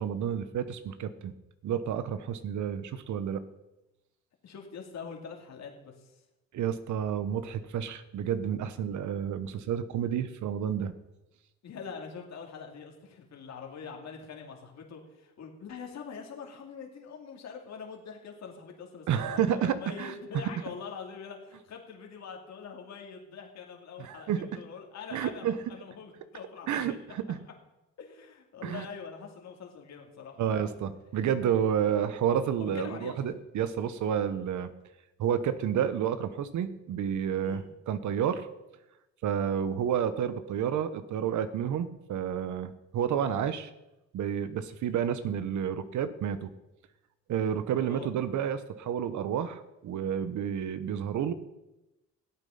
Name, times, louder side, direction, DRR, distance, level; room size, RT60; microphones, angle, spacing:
voice 1, 0.0-1.3 1.6-3.4 6.5-10.9 19.1-20.1 24.0-24.5 25.1-25.5 26.7-27.4 28.6-28.8 30.4-34.7 35.2-38.5 39.2-43.7 44.1-46.5 47.3-51.3, right 9 dB, 70° right, 13 dB, 1.0 m, -30 dB
voice 2, 4.4-6.2 11.6-27.0 28.0-30.7 32.6-33.2 37.4-37.6 47.9-48.1, left 6 dB, 65° left, 1 dB, 2.4 m, -44 dB
13.5 x 8.4 x 5.7 m, 0.96 s
cardioid pair, 90°, 30 cm